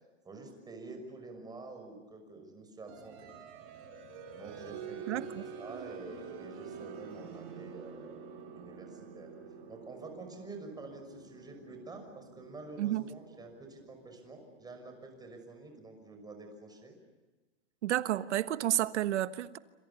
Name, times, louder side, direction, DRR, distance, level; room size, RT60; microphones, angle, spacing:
voice 1, 0.2-3.3 4.3-5.2 5.6-8.2 8.5-9.3 9.7-17.0, right 3 dB, 10° right, 4 dB, 6.1 m, -48 dB
sound 1, 2.9-15.4, right 6 dB, 40° right, 5.7 m, -48 dB
voice 2, 5.1-5.5 12.8-13.0 17.8-19.6, right 13 dB, 75° right, 12 dB, 1.4 m, -31 dB
27.5 x 27.0 x 7.0 m, 1.3 s
supercardioid pair, 145°, 34 cm